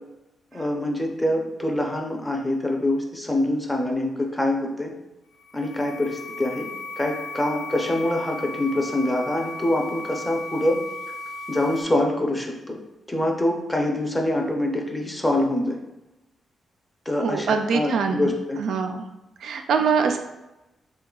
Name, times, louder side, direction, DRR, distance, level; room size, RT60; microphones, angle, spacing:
voice 1, 0.5-4.9 5.5-6.7 7.0-10.8 11.5-12.8 13.1-15.8 17.1-18.6, left 1 dB, 10° left, 1 dB, 0.5 m, -25 dB
sound 1, 5.3-11.8, left 2 dB, 80° left, 0.8 m, -36 dB
voice 2, 17.2-18.3 18.6-19.1 19.4-20.2, right 5 dB, 70° right, 5 dB, 0.3 m, -23 dB
3.7 x 2.3 x 3.7 m, 0.98 s
wide cardioid pair, 145°, 0 cm